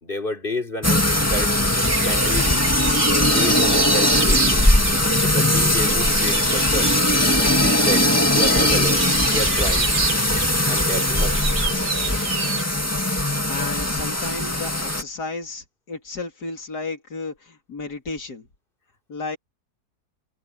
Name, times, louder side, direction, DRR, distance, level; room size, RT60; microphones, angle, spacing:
voice 1, 0.0-1.5 2.0-2.7 3.2-4.7 5.2-6.9 7.4-9.1 9.3-9.9 10.7-11.4, left 1 dB, 35° left, 3.7 m, -30 dB
sound 1, 0.8-15.0, left 1 dB, 10° left, 2.0 m, -20 dB
sound 2, 1.8-12.6, right 6 dB, 90° right, 2.3 m, -29 dB
voice 2, 13.5-18.5 19.1-19.4, left 3 dB, 85° left, 3.5 m, -33 dB
omnidirectional pair, 1.7 m